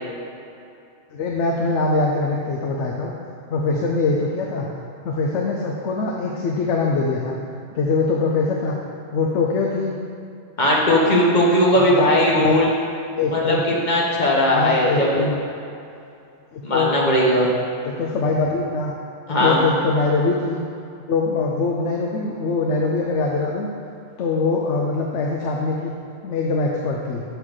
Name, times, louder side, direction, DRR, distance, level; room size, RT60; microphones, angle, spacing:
voice 1, 1.1-3.1 3.5-4.7 5.0-7.3 7.7-8.8 9.1-9.9 11.7-12.6 13.1-13.6 14.5-15.4 16.5-17.0 17.8-18.9 19.4-20.6 21.1-23.7 24.2-25.9 26.2-27.2, left 3 dB, 85° left, -1 dB, 1.0 m, -23 dB
voice 2, 10.6-12.7 13.3-13.6 13.8-15.2 16.6-17.5 19.3-19.6, left 1 dB, 45° left, -3 dB, 1.2 m, -18 dB
6.9 x 3.8 x 6.3 m, 2.6 s
omnidirectional pair, 1.2 m